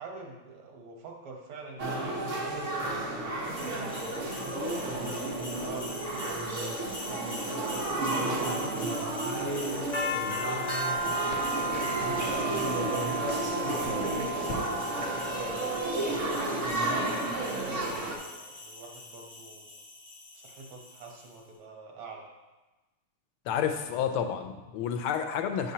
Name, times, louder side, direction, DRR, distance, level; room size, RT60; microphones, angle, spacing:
voice 1, 0.0-2.7 3.4-6.4 7.0-11.9 12.8-19.8 20.3-22.3, right 3 dB, 85° right, 1 dB, 2.0 m, -45 dB
sound 1, 1.8-18.1, right 2 dB, 55° right, 0.8 m, -32 dB
sound 2, 3.6-21.3, right 1 dB, 20° left, 2.4 m, -37 dB
sound 3, 11.0-16.9, left 2 dB, 50° left, 0.7 m, -44 dB
voice 2, 23.5-25.7, left 8 dB, 80° left, 6 dB, 1.4 m, -30 dB
7.3 x 7.2 x 2.8 m, 1.1 s
omnidirectional pair, 2.4 m